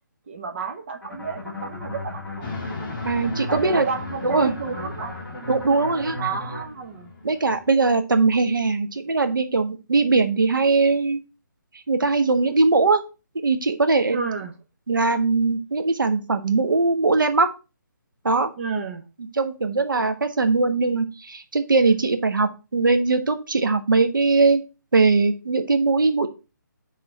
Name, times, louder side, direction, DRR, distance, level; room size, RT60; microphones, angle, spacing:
voice 1, 0.3-2.5 3.5-5.2 6.2-7.1 14.1-14.5 18.6-19.0, right 5 dB, 35° right, 1.1 m, -31 dB
sound 1, 1.0-6.7, left 1 dB, ahead, 2.8 m, -36 dB
sound 2, 2.4-7.8, left 4 dB, 30° left, 1.8 m, -37 dB
voice 2, 3.0-3.9 4.2-4.5 5.5-6.2 7.2-11.2 11.7-13.0 13.4-14.2 14.9-17.5 18.2-18.5 19.3-24.6 24.9-26.3, right 3 dB, 85° right, 1.4 m, -20 dB
6.1 x 3.9 x 6.2 m
hypercardioid pair, 165°, 11 cm